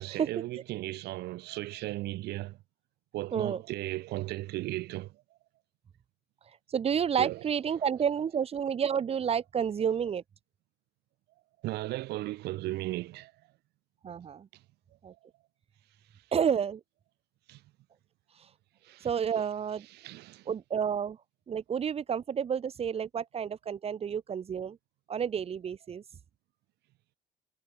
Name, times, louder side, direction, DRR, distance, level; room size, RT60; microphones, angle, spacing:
voice 1, 0.0-2.6 3.1-5.2 7.2-7.4 11.6-13.3 17.5-17.6 18.8-19.1 19.9-20.5, right 17 dB, 75° right, 0.9 m, -36 dB
voice 2, 6.7-10.2 14.0-14.5 15.0-15.1 16.3-16.8 19.0-19.9 20.5-21.2 21.5-24.8 25.1-26.0, right 7 dB, 35° right, 0.9 m, -30 dB
cardioid pair, 110°, 17 cm